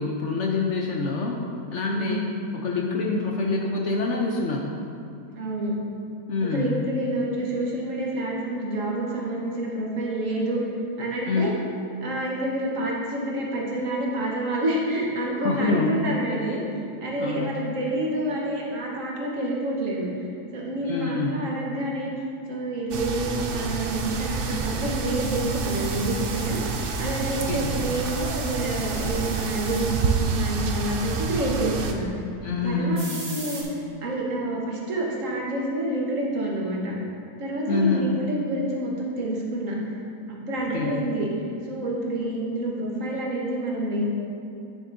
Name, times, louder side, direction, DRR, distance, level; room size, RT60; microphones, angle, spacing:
voice 1, 0.0-1.4 1.7-2.3 2.5-4.8 6.3-6.9 11.2-11.6 15.4-16.0 17.2-17.5 20.8-21.3 27.5-27.7 32.4-33.1 37.7-38.2 40.7-41.0, left 3 dB, 60° left, -1 dB, 0.8 m, -26 dB
voice 2, 1.9-2.3 5.3-5.8 6.5-10.6 11.0-11.5 12.0-16.6 17.0-20.2 20.5-22.1 22.5-26.7 27.0-32.1 32.6-33.0 33.3-36.9 37.4-39.8 40.3-41.3 41.6-44.0, right 1 dB, 60° right, -3 dB, 1.5 m, -28 dB
sound 1, 22.9-31.9, right 4 dB, 75° right, 0.5 m, -28 dB
sound 2, 23.9-31.3 32.9-33.6, right 2 dB, 35° right, 1.0 m, -41 dB
9.7 x 6.6 x 2.6 m, 2.6 s
omnidirectional pair, 1.6 m